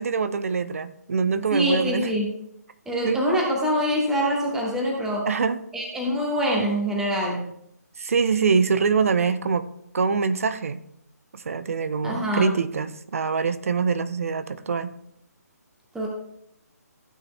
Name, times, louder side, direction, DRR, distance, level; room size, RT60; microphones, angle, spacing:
voice 1, 0.0-2.1 3.0-3.2 5.3-5.6 8.0-9.7 9.9-10.8 11.3-14.9, right 5 dB, 55° right, 12 dB, 0.7 m, -24 dB
voice 2, 1.5-2.3 2.8-5.3 5.7-7.4 12.0-12.5 15.9-16.1, equal, 5° right, -2 dB, 1.5 m, -24 dB
15.5 x 9.2 x 2.2 m, 0.76 s
figure-of-eight pair, 145°, 9 cm